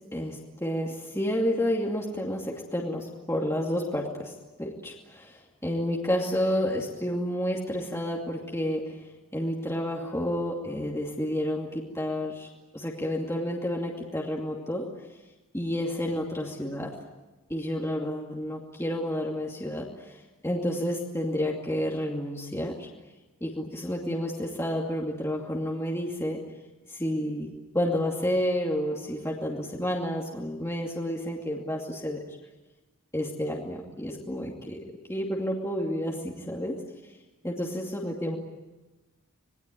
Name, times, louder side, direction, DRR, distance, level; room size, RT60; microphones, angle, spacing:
voice 1, 0.1-4.3 4.6-9.0 9.3-14.9 15.5-16.9 17.5-22.9 23.4-26.4 26.9-32.2 33.1-34.8 35.1-36.8 37.4-38.4, equal, 10° left, -2 dB, 2.5 m, -30 dB
27.0 x 20.5 x 9.2 m, 1.1 s
head